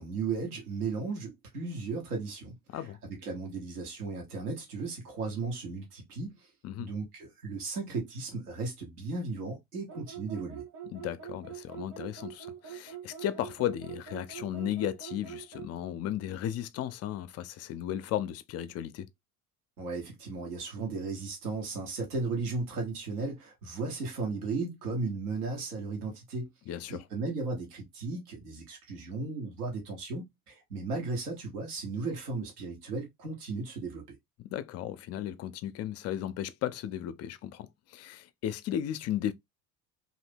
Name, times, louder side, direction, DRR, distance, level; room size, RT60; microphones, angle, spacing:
voice 1, 0.0-6.5 6.8-10.6 19.8-26.5 26.9-34.2, right 3 dB, 80° right, 1.1 m, -35 dB
sound 1, 9.9-15.7, right 9 dB, 60° right, 1.4 m, -44 dB
voice 2, 10.9-19.1 26.7-27.0 34.4-39.3, left 11 dB, 35° left, 0.4 m, -35 dB
2.6 x 2.5 x 3.4 m
figure-of-eight pair, 60°, 45 cm